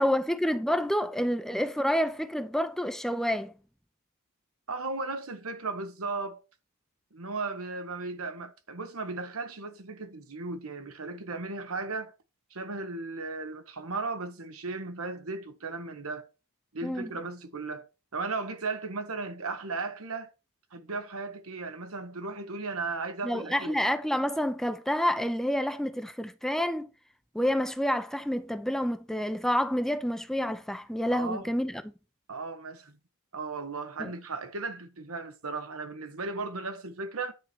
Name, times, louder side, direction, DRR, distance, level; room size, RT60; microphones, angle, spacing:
voice 1, 0.0-3.5 16.8-17.1 23.2-26.9 27.3-31.8 34.0-34.1, equal, ahead, 0.6 m, -28 dB
voice 2, 4.7-6.4 7.1-12.1 12.5-16.3 16.7-20.3 20.7-23.8 31.1-31.5 32.3-33.0 33.3-37.3, right 3 dB, 80° right, 1.3 m, -36 dB
10.0 x 4.4 x 6.2 m
head